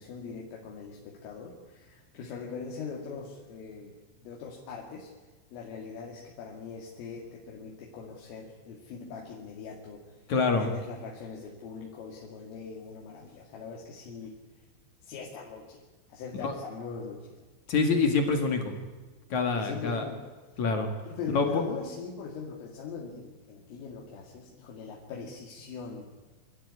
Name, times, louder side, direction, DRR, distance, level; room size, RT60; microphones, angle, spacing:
voice 1, 0.0-3.9 4.2-5.1 5.5-10.0 10.6-14.3 15.0-15.8 16.1-17.4 19.5-20.3 21.1-26.1, left 5 dB, 75° left, -1 dB, 4.9 m, -41 dB
voice 2, 10.3-10.7 16.4-16.5 17.7-18.7 19.3-20.0 20.6-20.9 21.3-21.6, left 4 dB, 50° left, 4 dB, 2.4 m, -26 dB
26.0 x 13.0 x 9.7 m, 1.3 s
omnidirectional pair, 5.9 m